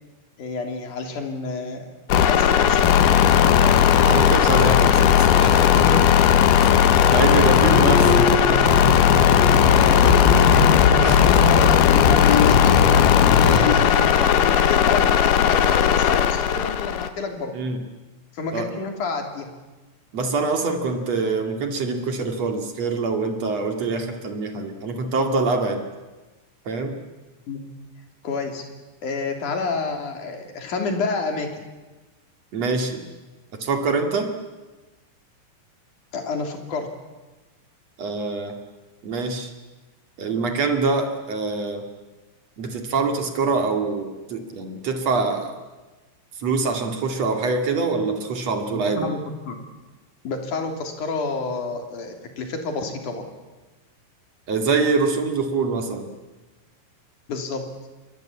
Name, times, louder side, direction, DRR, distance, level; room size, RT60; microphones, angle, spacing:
voice 1, 0.4-1.9 2.2-2.9 7.7-8.7 9.4-10.7 11.0-12.7 13.1-17.5 18.3-19.5 27.5-27.6 28.2-28.6 29.0-31.7 36.1-36.9 48.7-49.6 50.2-53.2 57.3-57.6, left 4 dB, 45° left, 4 dB, 4.0 m, -29 dB
sound 1, 2.1-17.1, left 9 dB, 90° left, 1.9 m, -16 dB
voice 2, 3.6-6.0 6.6-8.2 11.0-11.2 17.5-17.8 18.5-18.7 20.1-25.8 26.7-27.0 32.5-33.0 33.5-34.3 38.0-38.6 39.0-39.5 40.2-41.8 42.6-45.6 46.4-49.1 54.5-56.1, right 4 dB, 45° right, 4 dB, 2.5 m, -25 dB
sound 2, 7.6-13.9, left 2 dB, 65° left, 5.6 m, -22 dB
28.0 x 23.0 x 8.6 m, 1.2 s
omnidirectional pair, 5.8 m